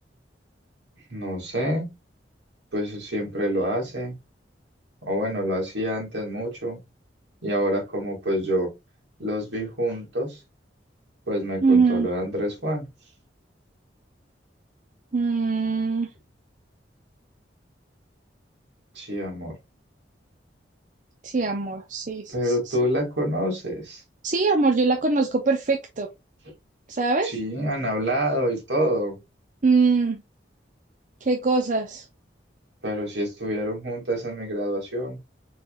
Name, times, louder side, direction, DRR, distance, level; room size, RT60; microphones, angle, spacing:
voice 1, 1.1-1.9 2.7-4.2 5.1-6.8 7.4-8.7 9.2-10.4 11.3-12.9 18.9-19.5 22.3-24.0 27.2-29.2 32.8-35.2, equal, 75° right, 2.7 m, -27 dB
voice 2, 11.6-12.1 15.1-16.1 21.2-22.8 24.2-26.1 26.9-27.3 29.6-30.2 31.2-32.1, right 4 dB, 45° right, 0.7 m, -22 dB
4.6 x 4.5 x 2.5 m
head